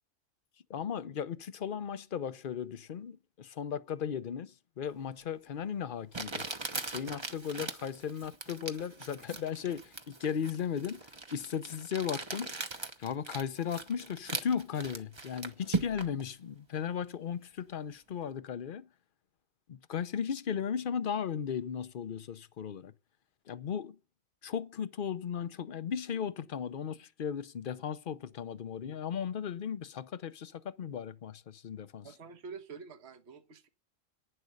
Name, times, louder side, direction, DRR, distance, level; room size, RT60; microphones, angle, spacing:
voice 1, 0.7-6.4 6.7-12.5 13.0-18.9 19.7-22.9 23.5-24.0 24.4-32.1, left 8 dB, 50° left, 0.8 m, -36 dB
Crumpling crinkling, 5.2-5.3 6.1-16.2, right 3 dB, 25° right, 0.9 m, -39 dB
voice 2, 32.0-33.7, right 5 dB, 60° right, 1.4 m, -47 dB
11.0 x 9.6 x 6.5 m
omnidirectional pair, 1.3 m